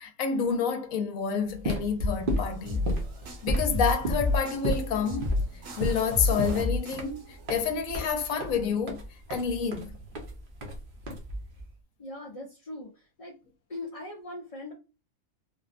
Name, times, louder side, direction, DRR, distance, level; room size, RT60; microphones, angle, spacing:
voice 1, 0.0-2.8 3.4-5.3 5.8-9.9, left 6 dB, 70° left, 1.0 m, -29 dB
sound 1, 1.5-11.7, equal, 45° right, 0.8 m, -33 dB
sound 2, 2.0-8.0, left 3 dB, 65° right, 1.3 m, -32 dB
voice 2, 12.0-13.4 13.7-14.7, left 2 dB, 40° left, 0.4 m, -40 dB
3.4 x 2.1 x 2.4 m
omnidirectional pair, 1.5 m